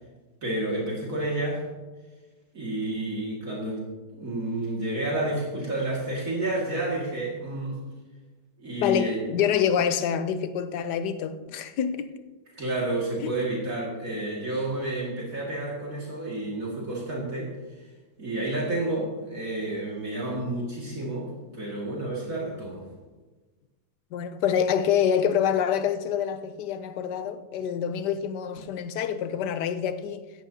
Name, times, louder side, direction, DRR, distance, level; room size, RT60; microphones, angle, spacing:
voice 1, 0.4-1.6 2.5-7.8 8.6-9.3 12.5-17.9 18.2-22.9, right 1 dB, 50° right, 2.6 m, -30 dB
voice 2, 8.8-12.1 13.2-13.4 24.1-30.2, left 8 dB, 75° left, 1.3 m, -26 dB
16.0 x 11.0 x 2.8 m
omnidirectional pair, 1.8 m